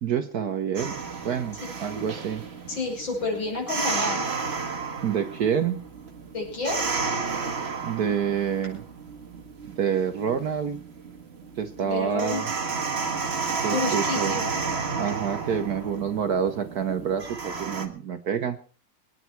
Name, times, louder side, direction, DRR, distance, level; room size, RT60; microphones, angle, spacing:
voice 1, 0.0-0.9 1.2-2.4 5.0-5.8 7.8-8.8 9.8-10.8 11.6-12.5 13.6-14.3 15.0-18.6, right 8 dB, 60° right, 8 dB, 1.2 m, -27 dB
sound 1, 0.8-17.9, right 4 dB, 35° right, 1.6 m, -32 dB
voice 2, 2.7-4.2 6.3-6.8 11.8-12.4 13.7-14.6, left 3 dB, 65° left, 1 dB, 6.3 m, -30 dB
23.5 x 9.4 x 4.5 m, 0.39 s
omnidirectional pair, 2.3 m